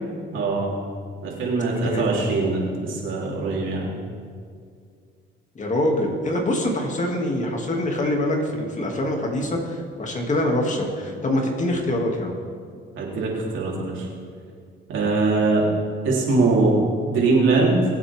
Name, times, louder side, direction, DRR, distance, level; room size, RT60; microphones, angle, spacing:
voice 1, 0.3-0.7 1.2-3.9 13.0-14.1 14.9-15.7 16.0-17.8, right 3 dB, 80° right, -3 dB, 3.6 m, -22 dB
voice 2, 5.5-12.4, left 1 dB, 40° left, 1 dB, 2.5 m, -24 dB
23.5 x 8.1 x 3.7 m, 2.2 s
cardioid pair, 90°, 20 cm